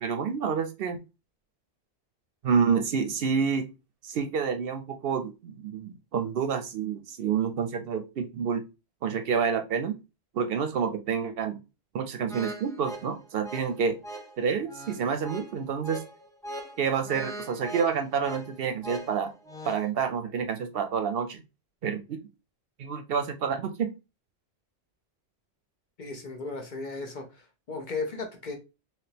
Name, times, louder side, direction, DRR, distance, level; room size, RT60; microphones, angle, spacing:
voice 1, 0.0-1.0 2.4-3.7 4.0-8.7 9.0-10.0 10.3-11.6 11.9-14.0 14.4-16.1 16.8-19.3 19.6-21.4 21.8-22.2 22.8-24.0, right 6 dB, 65° right, 0.7 m, -28 dB
sound 1, 12.3-19.9, right 1 dB, 5° left, 0.4 m, -41 dB
voice 2, 26.0-28.5, left 3 dB, 50° left, 0.8 m, -36 dB
3.4 x 3.0 x 2.8 m
omnidirectional pair, 1.1 m